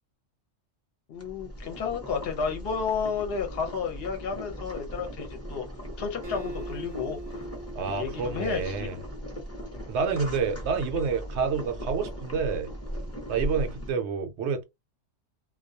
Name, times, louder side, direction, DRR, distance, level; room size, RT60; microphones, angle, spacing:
voice 1, 1.1-5.7 6.0-7.5 8.0-8.9 9.7-9.9, left 6 dB, 60° left, 0.8 m, -32 dB
Boiling, 1.1-13.9, equal, 15° left, 0.6 m, -38 dB
Acoustic guitar, 6.2-9.6, right 2 dB, 25° right, 0.6 m, -42 dB
voice 2, 7.7-9.0 9.9-12.7 13.3-14.6, right 5 dB, 70° right, 0.8 m, -28 dB
2.3 x 2.2 x 2.6 m
omnidirectional pair, 1.3 m